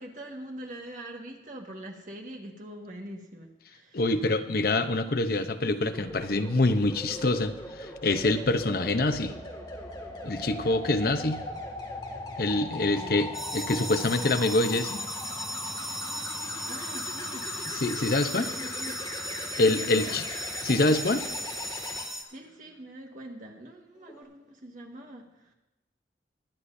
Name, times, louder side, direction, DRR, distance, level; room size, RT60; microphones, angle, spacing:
voice 1, 0.0-4.0 12.9-13.2 16.6-17.5 18.3-19.0 19.9-20.2 22.3-25.5, right 1 dB, 45° right, 1 dB, 1.7 m, -43 dB
voice 2, 3.9-9.4 10.2-11.4 12.4-15.0 17.8-18.5 19.6-20.2 20.6-21.3, left 2 dB, 55° left, 8 dB, 0.8 m, -25 dB
sound 1, 5.9-22.0 24.0-24.2, left 2 dB, 25° left, 2.1 m, -39 dB
sound 2, 13.3-22.2, equal, ahead, 0.8 m, -37 dB
22.5 x 10.0 x 2.7 m, 0.98 s
head